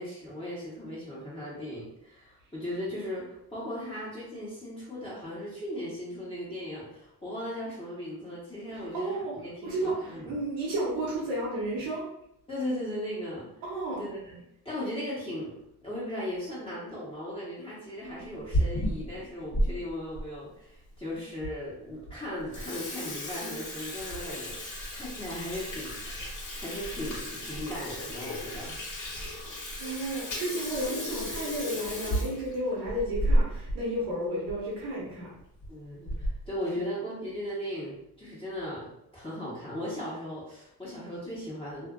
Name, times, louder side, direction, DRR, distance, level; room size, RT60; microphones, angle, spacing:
voice 1, 0.0-10.4 12.5-13.6 14.0-14.4 14.6-15.5 15.8-26.2 26.6-28.8 35.7-41.9, left 1 dB, 15° left, -9 dB, 1.1 m, -37 dB
voice 2, 8.7-9.3 9.6-12.0 13.6-14.0 29.5-35.3, right 1 dB, 90° right, -6 dB, 0.9 m, -32 dB
Water tap faucet / Sink (filling or washing), 18.2-19.7 20.2-20.3 21.0-21.1 21.4-21.5 21.9-22.1 22.4-33.8 34.1-34.2 34.5-34.6 35.4-35.7 36.1-36.5, equal, 45° left, 1.2 m, -32 dB
2.6 x 2.5 x 2.5 m, 0.79 s
cardioid pair, 75°, 40 cm